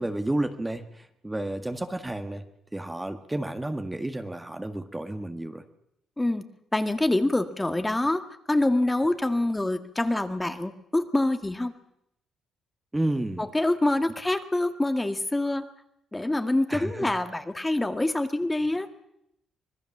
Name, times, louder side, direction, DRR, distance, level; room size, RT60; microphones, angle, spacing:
voice 1, 0.0-2.4 2.7-5.6 12.9-13.5 16.7-17.1, right 1 dB, 10° right, 7 dB, 1.7 m, -31 dB
voice 2, 6.7-8.2 8.5-11.7 13.4-15.6 16.1-18.9, left 2 dB, 15° left, 8 dB, 1.9 m, -25 dB
25.5 x 20.0 x 7.3 m, 0.79 s
cardioid pair, 90°, 0 cm